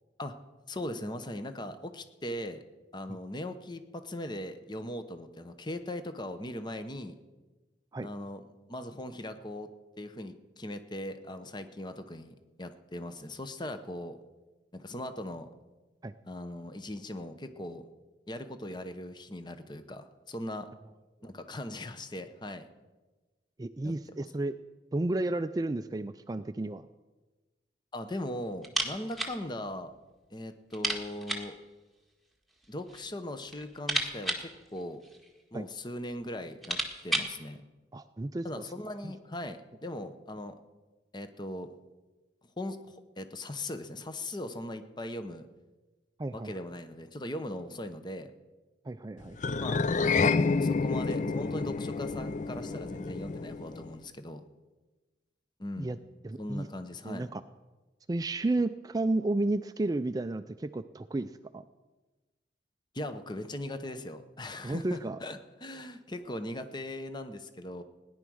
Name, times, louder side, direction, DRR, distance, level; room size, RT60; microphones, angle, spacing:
voice 1, 0.7-2.6 2.9-7.2 8.0-8.4 8.7-9.7 10.0-14.2 14.7-15.5 16.2-17.9 18.3-20.7 21.2-22.7 23.8-23.9 27.9-29.9 30.3-31.5 32.7-35.0 35.5-37.6 38.4-40.6 41.1-41.7 42.6-45.5 46.3-48.3 49.5-54.4 55.6-56.0 56.4-57.3 62.9-67.8, left 1 dB, 25° left, 9 dB, 0.9 m, -39 dB
voice 2, 23.6-24.5 24.9-26.9 35.5-35.7 37.9-38.6 39.0-39.1 46.2-46.5 48.8-49.6 55.8-56.0 56.2-56.7 57.0-57.4 58.1-61.6 64.6-65.2, right 2 dB, 20° right, 10 dB, 0.4 m, -32 dB
sound 1, 28.6-29.4 29.7-29.8 30.1-30.2 30.7-31.6 32.5-33.1 33.4-35.4 36.1-36.2 36.4-37.4, right 1 dB, ahead, 1.6 m, -34 dB
sound 2, 49.4-53.9, left 4 dB, 45° left, 0.4 m, -29 dB
17.5 x 10.5 x 6.3 m, 1.2 s
head